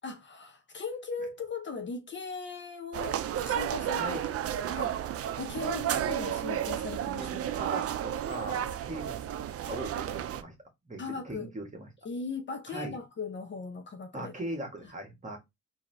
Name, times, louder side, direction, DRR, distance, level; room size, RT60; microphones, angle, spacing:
voice 1, 0.0-4.2 4.7-5.1 5.4-7.6 11.0-11.5 12.0-14.3, left 4 dB, 40° left, 0.7 m, -39 dB
sound 1, 2.9-10.4, right 10 dB, 50° right, 0.5 m, -32 dB
voice 2, 3.9-4.3 5.6-6.3 7.2-9.2 9.7-10.5 10.9-11.9 12.7-13.0 14.1-15.4, right 1 dB, 25° right, 1.5 m, -40 dB
3.7 x 2.8 x 3.3 m
cardioid pair, 90°, 30 cm